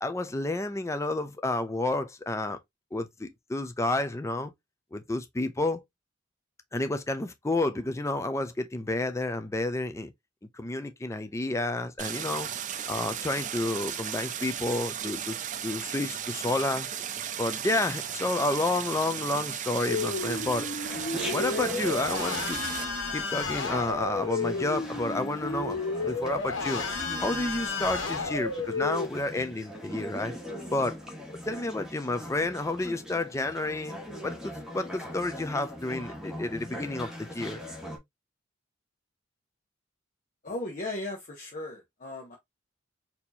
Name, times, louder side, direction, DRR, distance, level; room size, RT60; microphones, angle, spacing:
voice 1, 0.0-2.6 2.9-4.5 4.9-5.8 6.7-10.1 10.5-12.5 12.9-15.4 15.6-16.9 17.4-20.7 21.3-22.6 23.1-26.8 27.2-30.3 30.7-33.9 34.2-37.6, left 2 dB, 15° left, 0.5 m, -30 dB
Stream, 12.0-22.9, right 9 dB, 40° right, 0.4 m, -35 dB
sound 1, 19.9-29.1, left 3 dB, 80° left, 1.3 m, -32 dB
Chatter, 20.9-38.0, equal, 5° right, 1.2 m, -41 dB
voice 2, 40.4-42.4, left 2 dB, 45° left, 1.0 m, -36 dB
4.3 x 2.8 x 2.6 m
head